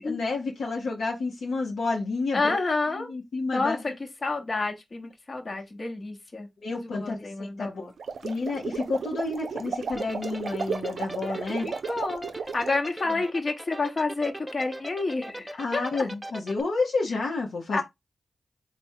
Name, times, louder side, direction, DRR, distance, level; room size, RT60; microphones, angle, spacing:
voice 1, 0.0-2.6 2.9-3.8 6.6-7.8 8.2-11.7 15.6-17.8, left 3 dB, 80° left, 0.8 m, -30 dB
voice 2, 2.3-3.1 3.5-3.9 4.2-7.9 11.6-12.2 12.5-16.1 17.7-17.8, left 3 dB, 50° left, 1.0 m, -29 dB
sound 1, 7.9-12.8, right 5 dB, 75° right, 0.3 m, -34 dB
sound 2, 10.0-16.6, right 1 dB, 15° right, 0.7 m, -39 dB
3.5 x 2.2 x 4.4 m
cardioid pair, 45°, 0 cm